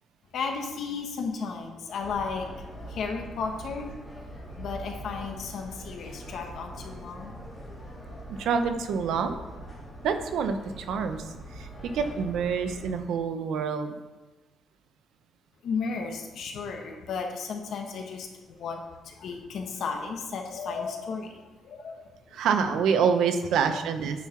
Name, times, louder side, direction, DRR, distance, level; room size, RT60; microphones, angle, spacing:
voice 1, 0.3-2.4 2.9-3.9 4.6-7.3 15.6-18.8 19.1-21.3 21.7-22.0 23.7-23.8, left 5 dB, 60° left, 3 dB, 1.1 m, -34 dB
sound 1, 2.0-12.9, right 1 dB, 5° left, 2.2 m, -43 dB
voice 2, 8.3-9.4 10.0-14.0 22.3-24.3, right 6 dB, 75° right, 8 dB, 0.7 m, -27 dB
9.4 x 4.7 x 5.7 m, 1.2 s
cardioid pair, 160°, 0 cm